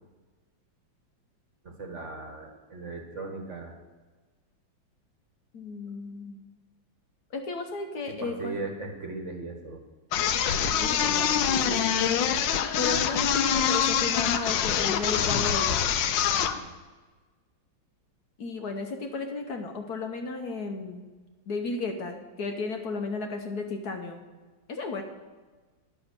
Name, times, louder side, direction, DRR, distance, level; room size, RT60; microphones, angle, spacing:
voice 1, 1.6-3.7 8.1-9.8 16.6-16.7, right 3 dB, 45° right, 3 dB, 1.3 m, -38 dB
voice 2, 5.5-6.4 7.3-8.6 10.8-11.9 12.3-12.5 12.8-15.8 18.4-21.1 21.5-24.3 24.7-25.0, left 3 dB, 60° left, 4 dB, 1.2 m, -34 dB
sound 1, 10.1-16.6, left 8 dB, 75° left, 1.3 m, -25 dB
10.0 x 7.0 x 6.6 m, 1.3 s
omnidirectional pair, 2.1 m